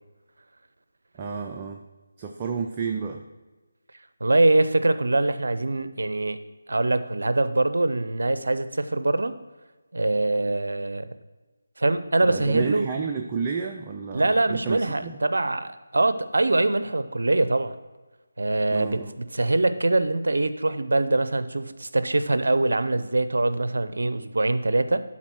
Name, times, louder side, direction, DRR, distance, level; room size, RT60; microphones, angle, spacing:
voice 1, 1.2-1.8 2.2-3.2 12.2-15.2 18.7-19.1, right 5 dB, 25° right, 2 dB, 0.5 m, -30 dB
voice 2, 4.2-6.4 6.7-9.3 9.9-11.1 11.8-12.9 14.1-17.7 18.4-25.0, right 2 dB, 70° right, 12 dB, 0.6 m, -23 dB
11.5 x 4.2 x 4.5 m, 1.2 s
figure-of-eight pair, 160°, 0 cm